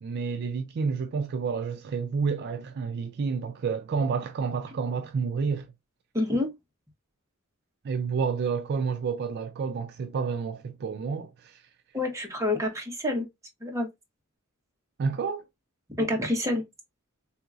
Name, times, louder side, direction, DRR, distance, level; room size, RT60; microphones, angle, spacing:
voice 1, 0.0-5.7 7.8-11.6 15.0-15.4, right 5 dB, 50° right, 0.4 m, -29 dB
voice 2, 6.1-6.5 11.9-13.3 13.6-13.9 16.0-16.6, left 1 dB, 15° right, 1.0 m, -27 dB
3.7 x 2.8 x 2.3 m
head